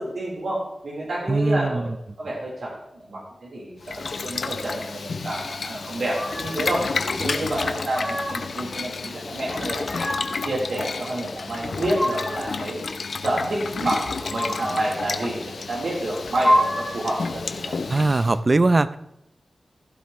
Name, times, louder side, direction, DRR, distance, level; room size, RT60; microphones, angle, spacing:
voice 1, 0.0-1.9 2.2-6.8 7.1-10.0 10.4-12.8 13.2-17.8, right 1 dB, 90° right, -4 dB, 4.2 m, -29 dB
voice 2, 1.3-1.9 17.9-19.0, right 2 dB, 40° right, 14 dB, 0.6 m, -20 dB
Boiling, 3.8-18.4, left 4 dB, 75° left, 0.7 m, -31 dB
sound 1, 6.1-6.7 7.5-8.6 9.5-10.5 11.5-12.6 14.1-15.0 16.1-17.1, equal, 20° left, 3.4 m, -27 dB
15.5 x 11.5 x 3.2 m, 0.83 s
wide cardioid pair, 95°, 0 cm